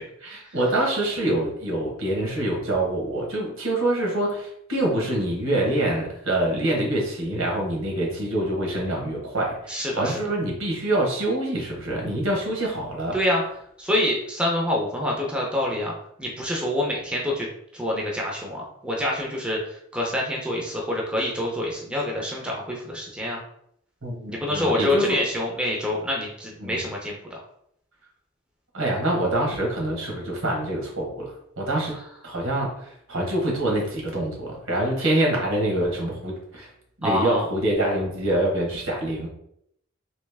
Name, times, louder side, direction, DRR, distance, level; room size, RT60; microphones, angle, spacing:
voice 1, 0.2-13.1 24.0-25.2 26.6-26.8 28.7-32.0 32.2-32.7 33.1-36.7 37.0-39.3, right 1 dB, 80° right, -1 dB, 1.2 m, -25 dB
voice 2, 9.7-10.2 13.1-13.4 13.8-15.9 16.2-17.5 17.7-23.4 24.3-27.4 37.0-37.4, left 1 dB, 5° right, -2 dB, 0.5 m, -26 dB
3.1 x 2.9 x 3.4 m, 0.73 s
head